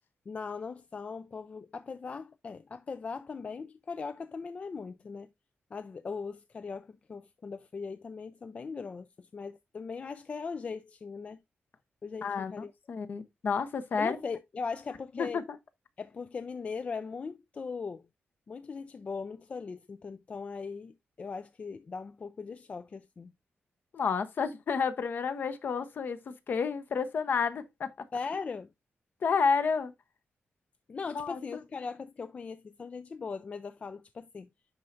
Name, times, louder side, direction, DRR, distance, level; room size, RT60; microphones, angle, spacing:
voice 1, 0.3-5.3 5.7-11.4 12.0-12.7 14.0-15.4 16.0-18.1 18.5-23.3 28.1-28.7 30.9-34.5, left 5 dB, 30° left, 0.3 m, -39 dB
voice 2, 12.2-14.2 15.2-15.6 23.9-27.9 29.2-29.9 31.1-31.6, left 5 dB, 50° left, 0.8 m, -30 dB
11.0 x 4.2 x 2.5 m
wide cardioid pair, 180°, 4 cm